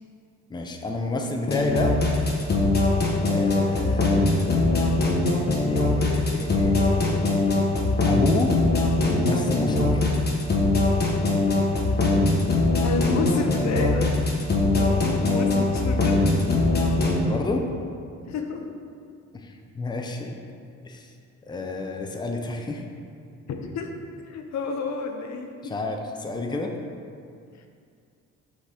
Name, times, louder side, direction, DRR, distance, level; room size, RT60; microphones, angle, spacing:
voice 1, 0.5-2.0 3.3-5.1 5.7-7.3 8.1-8.6 9.0-10.2 14.7-14.9 17.2-17.7 19.3-20.4 20.8-21.1 21.5-22.8 25.6-26.7, left 2 dB, 15° left, 2 dB, 0.6 m, -30 dB
sound 1, 1.5-17.2, left 2 dB, 35° left, 1.2 m, -21 dB
voice 2, 12.8-16.6 18.3-18.7 23.5-23.9 24.3-25.7, left 4 dB, 65° left, 4 dB, 0.7 m, -30 dB
5.7 x 4.3 x 4.9 m, 2.3 s
cardioid pair, 90°, 30 cm